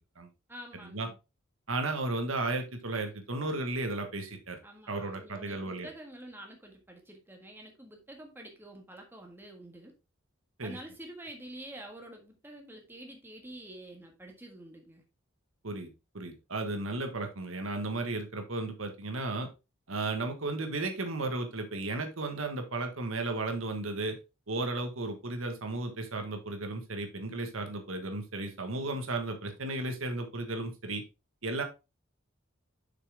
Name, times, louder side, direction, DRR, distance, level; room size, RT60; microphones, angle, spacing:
voice 1, 0.5-1.2 4.6-9.9 10.6-15.0, right 1 dB, 10° right, 2 dB, 1.5 m, -48 dB
voice 2, 1.7-4.6 4.9-5.9 10.6-10.8 15.6-19.5 19.9-24.2 24.5-31.0 31.4-31.6, right 2 dB, 85° right, 5 dB, 1.5 m, -34 dB
6.9 x 5.9 x 3.5 m, 0.27 s
head